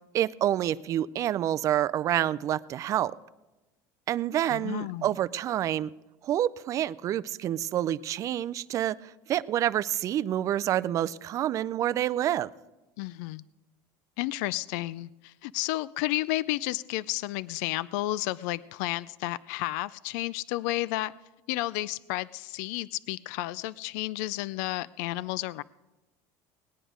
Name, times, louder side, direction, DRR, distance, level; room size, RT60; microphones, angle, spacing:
voice 1, 0.1-3.1 4.1-5.9 6.2-12.5, right 11 dB, 35° right, 16 dB, 0.4 m, -28 dB
voice 2, 4.4-5.1 13.0-13.4 14.2-21.1 21.5-25.6, left 17 dB, 80° left, 19 dB, 0.3 m, -32 dB
19.0 x 10.0 x 5.0 m, 1.0 s
cardioid pair, 150°, 9 cm